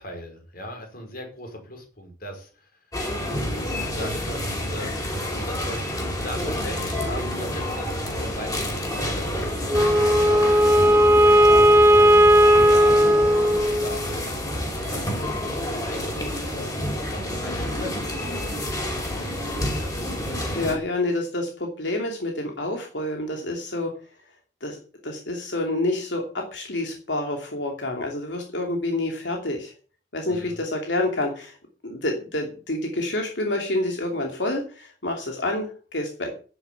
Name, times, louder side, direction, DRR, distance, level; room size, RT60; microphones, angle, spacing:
voice 1, 0.0-2.7 3.3-8.5 8.9-14.5 14.9-15.3 15.8-16.8 17.1-20.0 30.3-30.6, left 1 dB, 55° left, 3 dB, 5.3 m, -39 dB
sound 1, 2.9-20.8, left 1 dB, 20° left, 4.7 m, -29 dB
Wind instrument woodwind instrument, 9.7-14.1, equal, 15° right, 0.6 m, -16 dB
voice 2, 20.5-23.9 24.6-24.8 25.0-29.7 30.1-31.6 31.8-36.3, left 2 dB, 80° left, 2 dB, 2.9 m, -28 dB
11.0 x 9.8 x 7.1 m, 0.38 s
head